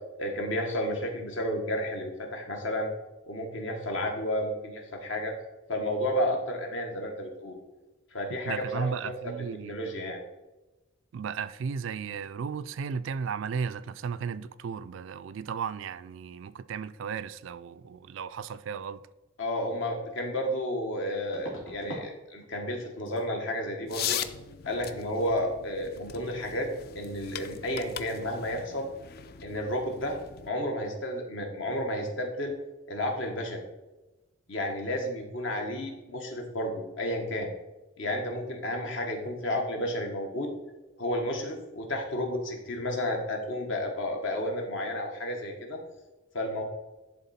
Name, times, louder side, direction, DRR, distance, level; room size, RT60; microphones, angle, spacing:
voice 1, 0.2-2.9 3.3-5.3 5.7-7.6 8.1-9.1 9.7-10.2 19.4-24.2 24.6-26.7 26.9-28.9 29.4-30.2 30.5-32.5 32.9-33.6 34.5-37.5 38.0-40.5 41.0-45.8 46.3-46.6, left 1 dB, 65° left, 1.4 m, -32 dB
voice 2, 8.5-10.1 11.1-19.0, right 6 dB, 65° right, 0.3 m, -35 dB
sound 1, 19.8-19.9 21.3-22.1 22.4-22.8 23.1-23.2 26.2-26.3 26.5-26.8 27.1-27.2, left 1 dB, 90° left, 2.5 m, -43 dB
sound 2, 23.9-30.5, left 9 dB, 45° left, 0.4 m, -39 dB
11.0 x 3.7 x 4.2 m
head